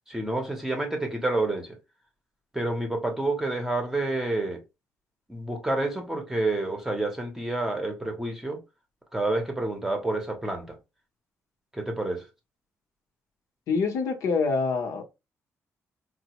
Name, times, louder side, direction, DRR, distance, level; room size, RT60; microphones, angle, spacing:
voice 1, 0.1-1.8 2.5-4.6 5.3-8.6 9.1-10.8 11.7-12.3, right 2 dB, 10° right, 0.7 m, -29 dB
voice 2, 13.7-15.0, left 4 dB, 80° left, 0.8 m, -25 dB
3.9 x 2.0 x 2.9 m
cardioid pair, 135°, 6 cm